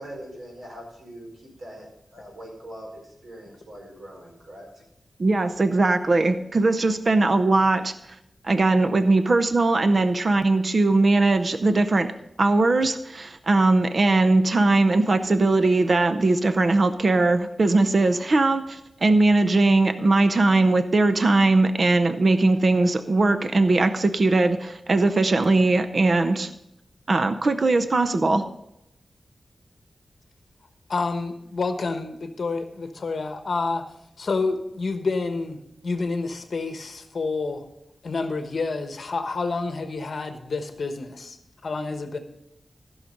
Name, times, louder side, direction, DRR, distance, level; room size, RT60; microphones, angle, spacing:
voice 1, 0.0-1.9 2.1-4.7, right 1 dB, 75° right, -2 dB, 4.5 m, -42 dB
voice 2, 5.2-7.9 8.4-12.1 12.4-26.5 27.1-28.4, right 2 dB, 45° right, 9 dB, 0.6 m, -20 dB
voice 3, 30.9-33.8 34.2-37.6 38.0-41.4 41.6-42.2, left 3 dB, 55° left, 7 dB, 1.1 m, -28 dB
15.0 x 6.3 x 5.2 m, 0.82 s
wide cardioid pair, 145°, 0 cm